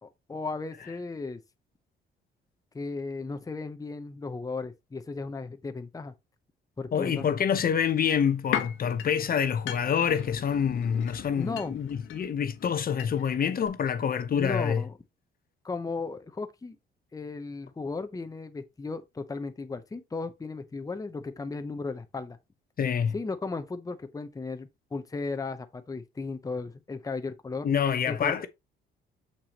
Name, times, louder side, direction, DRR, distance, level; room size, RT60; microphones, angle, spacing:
voice 1, 0.0-1.4 2.7-6.1 6.8-7.3 11.4-11.8 14.3-14.9 15.6-16.8 17.1-22.4 23.1-27.7 28.1-28.5, left 3 dB, 15° left, 0.8 m, -35 dB
voice 2, 6.9-14.8 22.8-23.1 27.6-28.5, left 7 dB, 45° left, 0.8 m, -27 dB
sound 1, 7.6-13.4 13.7-13.8, left 10 dB, 85° left, 1.2 m, -38 dB
6.8 x 6.0 x 2.9 m
cardioid pair, 90°, 20 cm